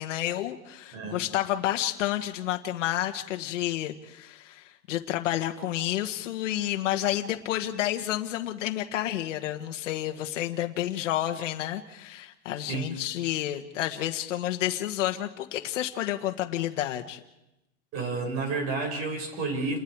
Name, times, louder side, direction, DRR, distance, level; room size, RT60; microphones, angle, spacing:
voice 1, 0.0-17.2, left 13 dB, 85° left, 5 dB, 1.7 m, -30 dB
voice 2, 17.9-19.8, right 3 dB, 40° right, 3 dB, 5.8 m, -30 dB
29.5 x 21.0 x 4.8 m, 0.93 s
supercardioid pair, 155°, 36 cm